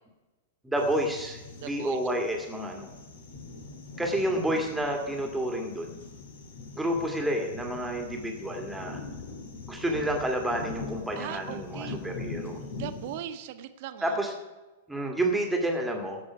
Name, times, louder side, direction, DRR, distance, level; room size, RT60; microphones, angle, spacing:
voice 1, 0.6-2.9 4.0-6.0 6.8-9.0 9.7-12.6 14.0-14.3 14.9-16.2, right 1 dB, 5° right, 2 dB, 1.9 m, -29 dB
sound 1, 0.8-13.2, left 3 dB, 55° left, 2.0 m, -42 dB
voice 2, 1.6-2.0 11.2-12.0 12.8-14.1, right 11 dB, 45° right, 11 dB, 0.9 m, -39 dB
17.0 x 6.1 x 5.9 m, 1.1 s
figure-of-eight pair, 100°, 0 cm